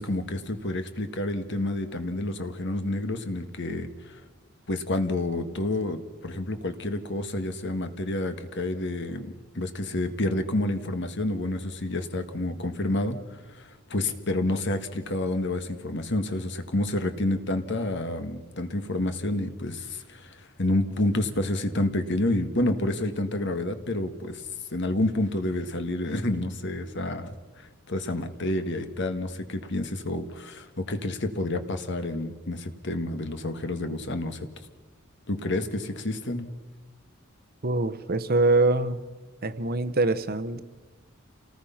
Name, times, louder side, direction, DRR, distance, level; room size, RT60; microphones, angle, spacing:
voice 1, 0.0-4.2 4.7-24.4 24.7-27.4 27.9-34.5 35.3-36.5, left 1 dB, 60° left, 8 dB, 1.7 m, -29 dB
voice 2, 37.6-39.0 39.4-40.6, right 2 dB, 45° right, 12 dB, 1.0 m, -24 dB
28.5 x 18.5 x 5.8 m, 1.3 s
head